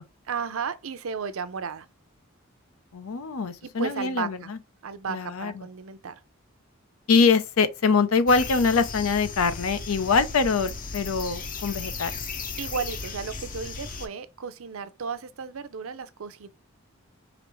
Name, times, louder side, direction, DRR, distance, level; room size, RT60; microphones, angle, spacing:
voice 1, 0.3-1.9 3.6-4.5 4.8-6.1 12.6-16.5, right 5 dB, 80° right, 0.6 m, -34 dB
voice 2, 2.9-4.6 5.1-5.7 7.1-12.1, left 4 dB, 90° left, 0.6 m, -24 dB
sound 1, 8.3-14.1, left 4 dB, 40° left, 0.7 m, -36 dB
5.1 x 3.0 x 3.0 m
head